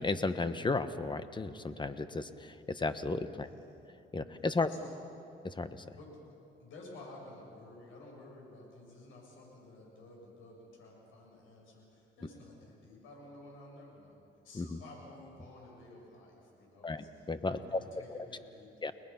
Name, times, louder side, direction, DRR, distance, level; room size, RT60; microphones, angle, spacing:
voice 1, 0.0-3.5 4.1-4.7 5.4-5.8 14.5-14.8 16.8-17.8 18.8-18.9, left 3 dB, 25° left, 11 dB, 1.2 m, -34 dB
voice 2, 3.3-3.6 4.6-5.0 5.9-6.2 6.6-18.9, left 2 dB, 90° left, -1 dB, 7.6 m, -53 dB
30.0 x 20.0 x 5.8 m, 2.8 s
cardioid pair, 90°, 20 cm